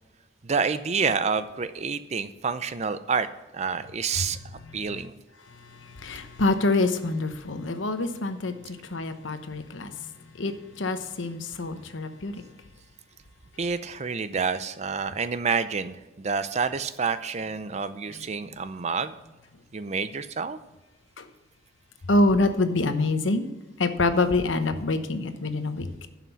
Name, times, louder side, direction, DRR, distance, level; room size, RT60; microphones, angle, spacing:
voice 1, 0.4-3.3 3.5-4.4 4.7-5.2 13.6-19.1 19.7-20.6, right 5 dB, 35° right, 12 dB, 0.5 m, -28 dB
voice 2, 5.7-10.1 10.4-12.4 21.2-21.3 22.1-23.5 23.8-26.1, left 2 dB, 85° left, 9 dB, 1.0 m, -26 dB
11.5 x 5.9 x 5.7 m, 1.1 s
head